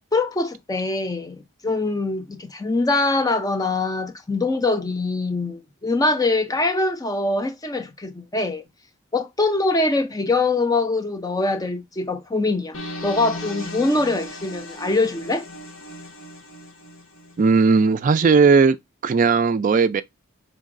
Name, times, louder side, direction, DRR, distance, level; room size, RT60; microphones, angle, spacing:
voice 1, 0.1-8.6 9.1-12.8 13.0-15.4, left 2 dB, 20° left, 0.5 m, -23 dB
sound 1, 12.7-17.7, left 1 dB, 80° left, 1.3 m, -36 dB
voice 2, 17.4-18.8 19.0-20.0, right 4 dB, 40° right, 0.3 m, -16 dB
5.3 x 3.9 x 2.5 m
head